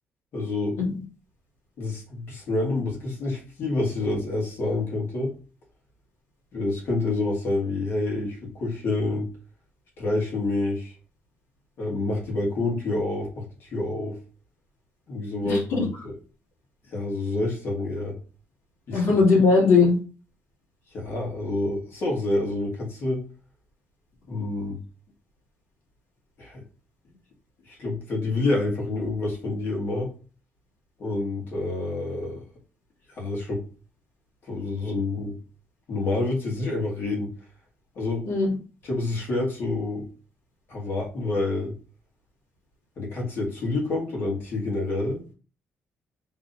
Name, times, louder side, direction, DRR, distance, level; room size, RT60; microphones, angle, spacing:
voice 1, 0.3-0.8 1.8-5.3 6.5-9.3 10.0-10.9 11.8-14.2 15.1-16.1 16.9-18.1 18.9-19.2 20.9-23.2 24.3-24.8 26.4-26.6 27.7-30.1 31.0-32.4 33.2-33.6 34.5-35.4 35.9-37.3 37.9-38.2 38.8-40.0 40.7-41.7 43.0-45.2, left 2 dB, 50° left, -2 dB, 1.7 m, -28 dB
voice 2, 15.4-15.9 18.9-20.0 38.3-38.5, left 4 dB, 75° left, -6 dB, 2.1 m, -19 dB
5.7 x 3.3 x 2.6 m, 0.37 s
cardioid pair, 180°, 5 cm